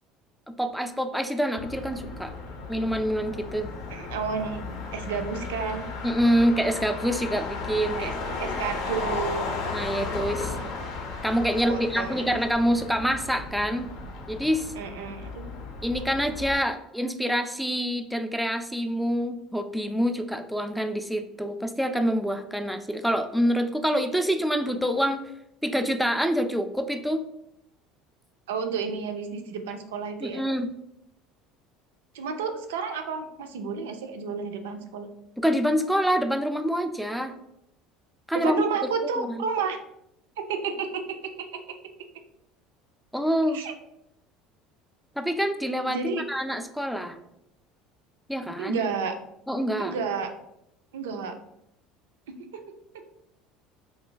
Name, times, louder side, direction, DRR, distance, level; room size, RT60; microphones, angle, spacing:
voice 1, 0.5-2.3 2.7-3.7 6.0-8.1 8.4-8.6 9.7-10.6 11.2-13.9 14.3-14.7 15.8-25.3 25.6-27.2 30.2-30.7 35.4-37.4 38.3-38.6 39.2-39.4 43.1-43.6 45.2-47.2 48.3-48.8 49.5-49.9, equal, ahead, 7 dB, 0.3 m, -26 dB
Motor vehicle (road), 1.6-16.5, left 4 dB, 70° left, 0.6 m, -35 dB
voice 2, 3.9-4.6 4.9-5.8 8.0-8.1 8.4-9.5 11.7-12.3 14.8-15.4 28.5-30.4 32.1-35.1 38.3-39.8 40.5-41.5 43.5-43.7 45.9-46.2 48.6-49.1 49.8-50.3 50.9-51.4 52.3-52.6, right 5 dB, 90° right, 6 dB, 0.4 m, -31 dB
2.3 x 2.3 x 3.8 m, 0.81 s
supercardioid pair, 90°, 0 cm